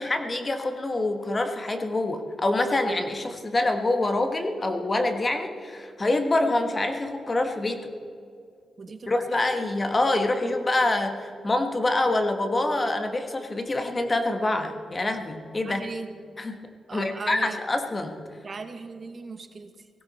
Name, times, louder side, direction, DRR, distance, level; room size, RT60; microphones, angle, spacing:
voice 1, 0.0-7.9 9.1-15.8 16.4-16.6 16.9-18.2, left 2 dB, 25° left, 6 dB, 1.4 m, -26 dB
voice 2, 8.8-9.6 15.6-16.1 16.9-17.6 18.4-19.9, right 4 dB, 40° right, 8 dB, 0.9 m, -38 dB
18.5 x 16.0 x 4.2 m, 2.3 s
wide cardioid pair, 115°, 0 cm